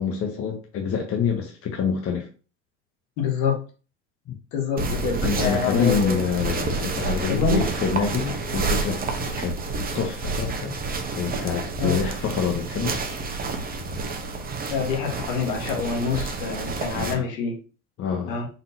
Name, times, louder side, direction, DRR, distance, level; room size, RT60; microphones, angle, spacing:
voice 1, 0.0-2.3 4.3-4.4 4.9-9.6 9.9-13.0 16.9-17.2 18.0-18.4, left 6 dB, 40° left, 2 dB, 1.0 m, -27 dB
voice 2, 3.2-3.6 4.5-6.4 7.3-7.6 11.8-12.0 14.7-17.6 18.3-18.5, left 6 dB, 65° left, 2 dB, 1.4 m, -26 dB
sound 1, 4.8-17.1, right 3 dB, 25° right, 0.9 m, -29 dB
4.0 x 3.6 x 2.7 m, 0.35 s
hypercardioid pair, 80°, 35 cm